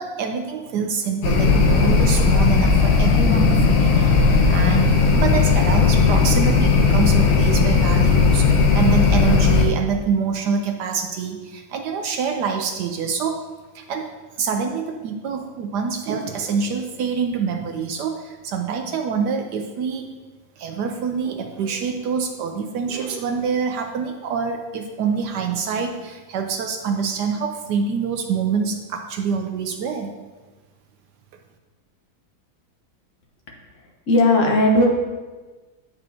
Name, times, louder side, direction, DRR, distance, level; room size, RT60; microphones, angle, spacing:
voice 1, 0.0-8.5 8.7-13.4 13.7-14.1 14.4-20.1 20.6-30.1, right 6 dB, 75° right, 4 dB, 1.0 m, -26 dB
sound 1, 1.2-9.7, left 4 dB, 80° left, 1.6 m, -16 dB
voice 2, 34.1-34.9, left 1 dB, 50° left, 0 dB, 1.1 m, -16 dB
8.5 x 5.4 x 2.7 m, 1.3 s
omnidirectional pair, 2.2 m